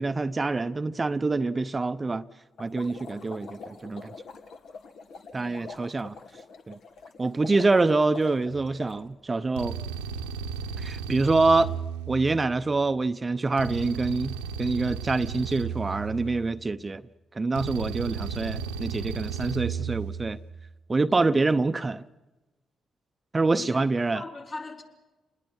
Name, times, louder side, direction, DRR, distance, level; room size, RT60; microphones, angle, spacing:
voice 1, 0.0-2.3 2.6-4.1 5.3-6.2 6.7-6.8 7.2-9.8 10.8-11.7 12.1-17.1 17.4-20.4 20.9-22.0 23.3-24.2, right 3 dB, 30° right, 0.8 m, -26 dB
sound 1, 2.6-9.1, left 4 dB, 65° left, 2.0 m, -45 dB
voice 2, 5.3-5.7 21.1-21.4 23.5-23.8 24.1-24.8, left 3 dB, 50° left, 4.5 m, -40 dB
sound 2, 8.5-8.8 9.6-12.8 13.6-16.8 17.6-20.5, right 6 dB, 90° right, 1.2 m, -35 dB
28.0 x 20.5 x 6.5 m
hypercardioid pair, 40°, 0 cm